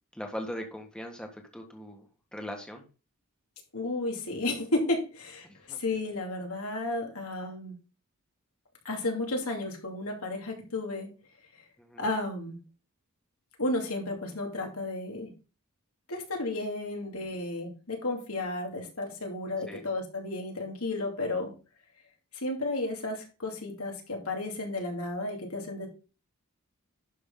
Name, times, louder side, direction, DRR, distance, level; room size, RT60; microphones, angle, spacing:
voice 1, 0.1-2.0 2.3-2.8 5.4-5.8 11.8-12.0 19.7-19.8, equal, 5° left, 2 dB, 1.5 m, -40 dB
voice 2, 3.7-5.5 5.8-7.7 8.8-11.1 12.0-12.6 13.6-15.3 16.1-21.5 22.3-25.9, left 2 dB, 75° left, 2 dB, 2.6 m, -33 dB
11.5 x 5.9 x 3.8 m, 0.33 s
head